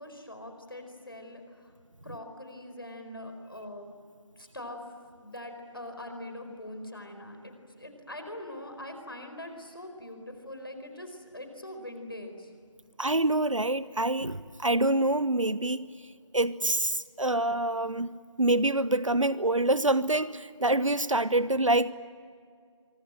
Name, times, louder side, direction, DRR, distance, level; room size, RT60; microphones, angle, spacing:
voice 1, 0.0-1.7 2.0-3.9 4.4-4.8 5.1-12.5, left 1 dB, 45° left, 6 dB, 4.7 m, -42 dB
voice 2, 13.0-15.9 16.3-21.9, right 2 dB, 80° right, 16 dB, 1.0 m, -26 dB
26.5 x 24.5 x 9.0 m, 2.1 s
figure-of-eight pair, 175°, 16 cm